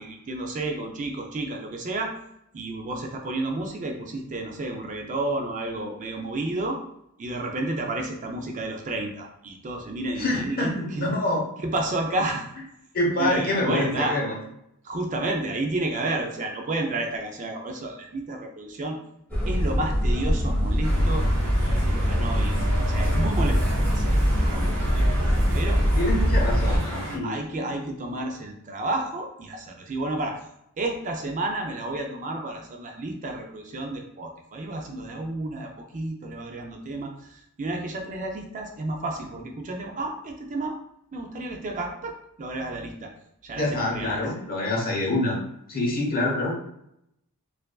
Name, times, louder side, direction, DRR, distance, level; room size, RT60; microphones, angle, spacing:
voice 1, 0.0-2.1 2.5-6.8 7.2-11.1 11.6-12.5 13.2-14.2 14.8-19.0 19.5-24.2 24.4-24.9 25.5-25.8 26.7-26.8 27.2-30.5 30.8-40.7 41.1-43.1 43.4-44.2, right 2 dB, 35° right, 3 dB, 0.4 m, -31 dB
voice 2, 10.2-11.4 12.9-14.4 25.9-27.6 43.5-45.4 45.7-46.5, left 1 dB, 45° left, -2 dB, 1.0 m, -26 dB
sound 1, 19.3-26.8, equal, 10° left, 1.1 m, -23 dB
sound 2, 20.8-27.2, equal, 85° right, 1.0 m, -32 dB
4.4 x 2.5 x 2.3 m, 0.78 s
head